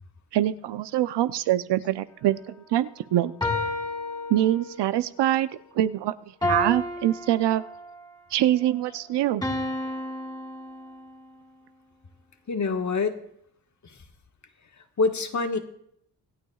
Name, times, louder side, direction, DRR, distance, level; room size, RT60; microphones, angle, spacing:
voice 1, 0.3-3.3 4.3-5.5 5.7-6.1 6.4-7.6 8.3-9.4, right 13 dB, 75° right, 13 dB, 0.7 m, -24 dB
sound 1, 3.4-5.0 6.4-8.1 9.4-11.3, left 1 dB, 10° left, 3.0 m, -31 dB
voice 2, 12.5-13.2 13.8-14.0 15.0-15.6, left 4 dB, 40° left, 5 dB, 1.5 m, -25 dB
26.0 x 8.8 x 2.4 m, 0.70 s
cardioid pair, 75°, 42 cm